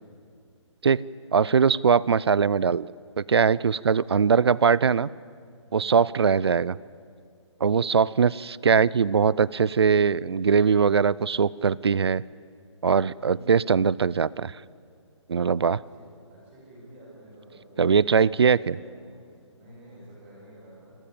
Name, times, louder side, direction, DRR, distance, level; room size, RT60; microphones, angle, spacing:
voice 1, 1.3-2.9 3.2-5.1 5.7-6.8 7.6-12.2 12.8-14.6 15.3-15.8 17.8-18.8, right 6 dB, 55° right, 22 dB, 0.5 m, -21 dB
voice 2, 5.6-6.1 13.1-13.5 15.7-21.0, right 1 dB, 5° right, -11 dB, 6.3 m, -49 dB
27.5 x 13.5 x 8.8 m, 2.3 s
hypercardioid pair, 180°, 16 cm